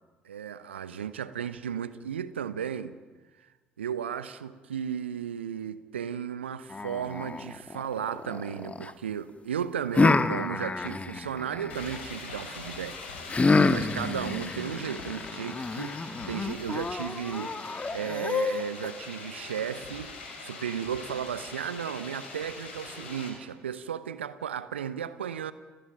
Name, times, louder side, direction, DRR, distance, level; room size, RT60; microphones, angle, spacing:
voice 1, 0.2-3.0 3.8-13.0 13.4-17.6 17.9-25.5, right 8 dB, 80° right, 0.9 m, -35 dB
sound 1, 6.7-8.9 9.9-12.0 13.3-18.9, left 3 dB, 20° left, 1.4 m, -28 dB
sound 2, 11.7-23.3, left 4 dB, 75° left, 6.6 m, -42 dB
30.0 x 17.5 x 9.2 m
figure-of-eight pair, 50°, 6 cm